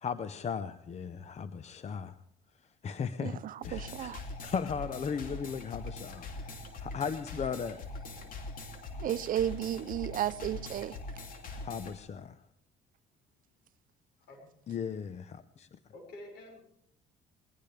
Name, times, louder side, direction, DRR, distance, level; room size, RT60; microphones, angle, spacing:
voice 1, 0.0-2.2 2.8-3.4 3.6-6.5 6.8-7.8 11.6-12.4 14.7-15.7, left 6 dB, 40° left, 0.8 m, -37 dB
voice 2, 3.2-4.2 9.0-11.0, right 11 dB, 55° right, 0.6 m, -33 dB
sound 1, 3.6-12.0, left 2 dB, 60° left, 2.8 m, -43 dB
voice 3, 15.9-16.6, left 1 dB, 75° left, 5.7 m, -48 dB
21.0 x 20.0 x 3.4 m
supercardioid pair, 75°, 17 cm